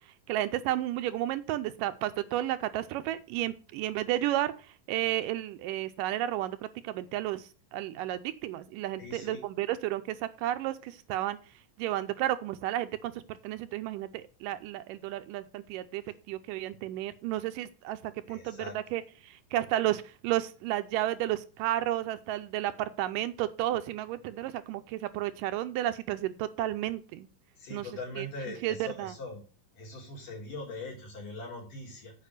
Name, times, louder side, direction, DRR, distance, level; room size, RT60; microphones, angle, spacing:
voice 1, 0.3-6.6 6.8-11.4 11.8-27.3 27.7-27.9 28.2-29.1, right 13 dB, 80° right, 11 dB, 2.2 m, -32 dB
voice 2, 9.0-9.4 18.3-18.8 27.6-29.4 29.8-32.1, left 2 dB, 65° left, -1 dB, 5.2 m, -41 dB
8.4 x 5.2 x 6.6 m, 0.36 s
omnidirectional pair, 3.9 m